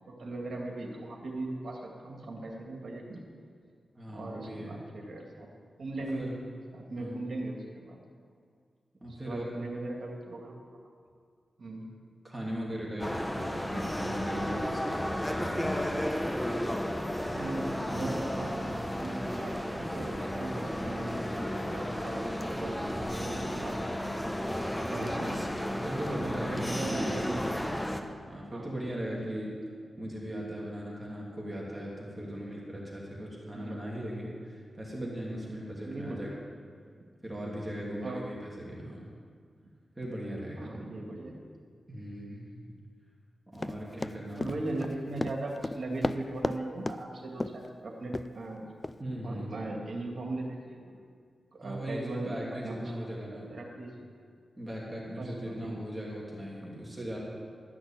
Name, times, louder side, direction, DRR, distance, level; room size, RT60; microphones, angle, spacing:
voice 1, 0.1-3.2 4.1-5.5 5.8-6.3 6.7-8.0 9.0-10.5 11.6-11.8 17.3-24.2 24.8-25.4 25.7-25.8 26.5-27.7 28.5-28.7 33.5-33.8 35.8-36.3 38.0-38.2 40.6-41.4 44.4-48.7 49.2-51.1 51.5-52.3 52.6-54.1 55.2-55.8, right 2 dB, 65° right, 0 dB, 2.2 m, -39 dB
voice 2, 3.9-4.8 6.0-6.4 7.0-7.2 9.0-9.5 12.2-15.9 24.9-25.3 25.8-27.2 28.2-29.5 30.0-36.3 37.2-39.0 40.0-40.8 41.9-42.5 43.5-44.6 49.0-49.7 51.6-53.5 54.6-57.2, equal, 15° right, -4 dB, 2.7 m, -38 dB
sound 1, 13.0-28.0, equal, 10° left, 0.9 m, -33 dB
Run, 43.6-46.6 46.9-47.0 47.4-47.7 48.1-48.3 48.8-49.0, left 2 dB, 25° left, 0.4 m, -33 dB
13.0 x 6.1 x 8.9 m, 2.1 s
wide cardioid pair, 90°, 0 cm